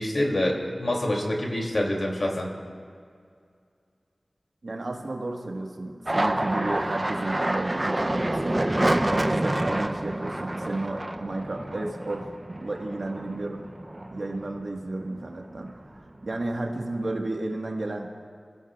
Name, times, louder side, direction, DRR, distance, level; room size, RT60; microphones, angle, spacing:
voice 1, 0.0-2.5, left 1 dB, 65° left, -1 dB, 2.9 m, -26 dB
voice 2, 4.6-8.6 9.1-13.7 14.1-18.1, right 2 dB, 70° right, 1 dB, 1.6 m, -32 dB
sound 1, 6.1-14.8 15.2-15.9 16.2-17.1, right 1 dB, 25° right, 0.6 m, -28 dB
27.5 x 15.5 x 2.5 m, 2.2 s
wide cardioid pair, 70°, 0 cm